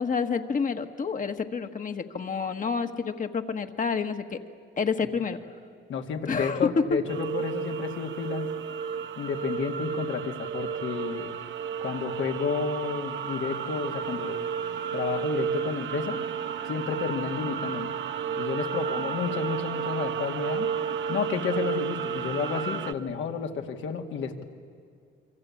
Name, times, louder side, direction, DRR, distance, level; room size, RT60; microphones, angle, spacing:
voice 1, 0.0-4.4 4.8-5.4 6.3-6.7, left 5 dB, 40° left, 6 dB, 1.6 m, -29 dB
voice 2, 5.9-8.5 9.2-11.3 11.8-14.4 14.9-16.2 16.6-17.9 18.4-20.7 21.1-24.4, left 6 dB, 75° left, 4 dB, 2.3 m, -31 dB
sound 1, 7.1-22.9, right 7 dB, 75° right, 1.0 m, -32 dB
27.0 x 24.0 x 8.6 m, 2.3 s
cardioid pair, 90°, 20 cm